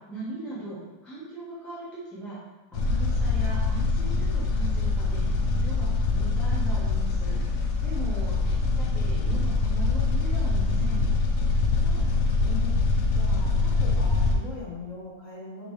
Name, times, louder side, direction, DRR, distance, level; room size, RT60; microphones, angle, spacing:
voice 1, 0.1-2.4 2.7-11.0, right 2 dB, ahead, -9 dB, 0.7 m, -39 dB
sound 1, 2.7-14.4, left 3 dB, 80° left, 0.7 m, -24 dB
voice 2, 11.8-12.8 13.1-15.7, left 3 dB, 50° left, -4 dB, 1.1 m, -41 dB
5.1 x 3.2 x 3.2 m, 1.1 s
omnidirectional pair, 2.1 m